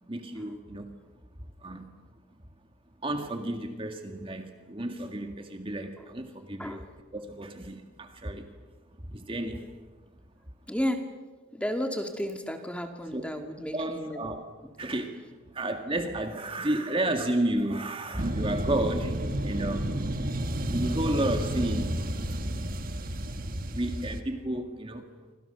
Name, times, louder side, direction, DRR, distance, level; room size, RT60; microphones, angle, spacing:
voice 1, 0.1-0.9 1.6-1.9 3.0-6.9 7.1-8.5 9.0-9.7 13.1-13.2 13.7-14.5 14.8-19.9 20.7-22.0 23.7-25.1, right 1 dB, 25° right, 5 dB, 2.0 m, -32 dB
voice 2, 10.7-11.0 11.5-14.2, equal, 5° left, 4 dB, 2.2 m, -32 dB
sound 1, 18.2-24.2, right 1 dB, 45° right, 1.6 m, -31 dB
28.5 x 26.0 x 6.9 m, 1.3 s
head